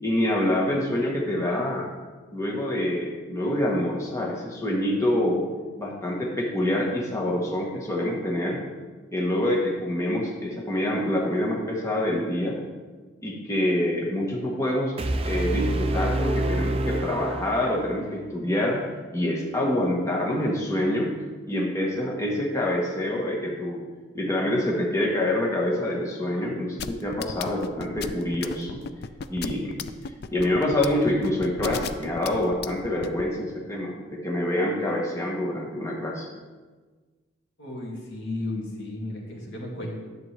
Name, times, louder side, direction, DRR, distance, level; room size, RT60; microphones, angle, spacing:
voice 1, 0.0-1.9 2.3-5.5 5.8-8.6 9.1-12.6 13.2-14.9 15.2-21.1 21.5-23.8 24.1-28.8 29.3-36.3, left 1 dB, 15° left, -3 dB, 1.1 m, -26 dB
sound 1, 15.0-18.0, right 1 dB, 30° right, 0.5 m, -27 dB
sound 2, 26.8-33.2, left 6 dB, 50° left, 0.4 m, -34 dB
voice 2, 37.6-40.0, left 1 dB, 80° left, -2 dB, 2.3 m, -34 dB
10.5 x 7.9 x 3.3 m, 1.4 s
head